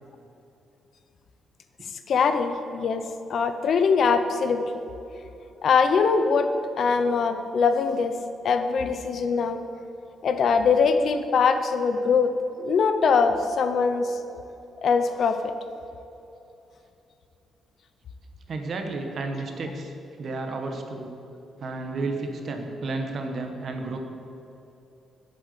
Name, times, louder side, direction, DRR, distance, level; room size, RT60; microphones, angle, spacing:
voice 1, 2.1-4.7 5.6-6.5 6.8-8.2 8.4-9.6 10.2-12.3 12.6-14.2 14.8-15.5, left 5 dB, 45° left, 8 dB, 0.6 m, -22 dB
voice 2, 18.5-19.9 20.2-21.1 21.6-24.0, right 3 dB, 40° right, 4 dB, 1.2 m, -32 dB
8.1 x 7.8 x 8.1 m, 2.9 s
cardioid pair, 175°, 0 cm